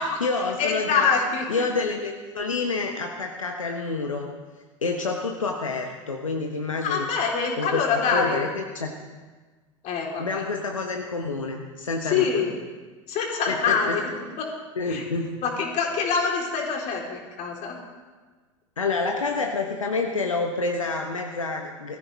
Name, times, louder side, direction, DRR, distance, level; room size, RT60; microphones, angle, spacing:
voice 1, 0.0-1.1 1.5-4.3 4.8-7.1 7.6-8.9 10.2-12.6 13.5-14.0 14.8-15.3 18.8-22.0, left 3 dB, 85° left, 2 dB, 1.2 m, -28 dB
voice 2, 0.6-1.6 6.8-8.5 9.8-10.4 12.1-12.5 13.1-14.1 14.4-14.5 14.9-15.0 15.4-17.8, left 5 dB, 45° left, 0 dB, 3.9 m, -25 dB
20.5 x 14.0 x 4.1 m, 1.4 s
figure-of-eight pair, 80°, 16 cm